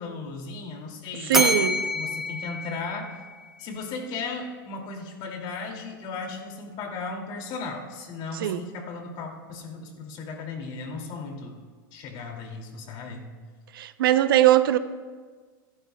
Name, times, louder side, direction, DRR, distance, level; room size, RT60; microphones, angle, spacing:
voice 1, 0.0-3.1 3.6-11.6 11.9-13.3, left 4 dB, 45° left, 2.6 m, -36 dB
Bell, 1.3-3.6, left 1 dB, 5° right, 0.9 m, -27 dB
voice 2, 1.3-1.8 8.4-8.6 13.7-14.8, right 13 dB, 80° right, 0.7 m, -20 dB
25.5 x 11.5 x 2.3 m
supercardioid pair, 125°, 12 cm